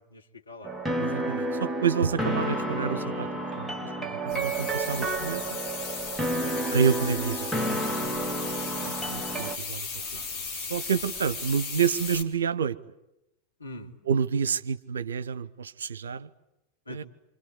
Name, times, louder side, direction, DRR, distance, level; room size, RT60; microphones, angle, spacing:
voice 1, 0.0-0.9 6.4-6.7 8.8-9.2 13.6-13.9 16.9-17.0, left 1 dB, 80° left, 2.9 m, -45 dB
sound 1, 0.6-9.6, right 1 dB, 5° right, 1.9 m, -30 dB
voice 2, 1.0-3.3 3.5-3.7 4.0-5.6 6.7-7.6 8.7-10.3 10.5-12.8 14.1-16.3 16.9-17.0, right 7 dB, 70° right, 0.9 m, -29 dB
sound 2, 4.3-12.2, left 5 dB, 30° left, 4.3 m, -36 dB
28.0 x 25.5 x 8.3 m
figure-of-eight pair, 90°, 0 cm